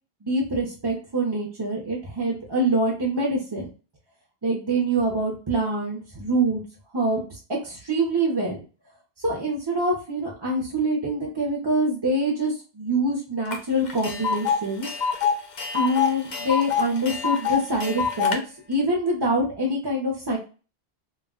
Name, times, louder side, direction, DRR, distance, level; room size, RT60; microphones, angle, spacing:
voice 1, 0.2-3.7 4.4-6.6 6.9-8.6 9.2-14.9 15.7-18.4 18.7-20.4, right 1 dB, 30° right, -3 dB, 0.5 m, -25 dB
Tick, 13.5-13.6 13.9-18.4, left 6 dB, 55° left, 0.5 m, -25 dB
2.3 x 2.1 x 3.6 m, 0.34 s
omnidirectional pair, 1.1 m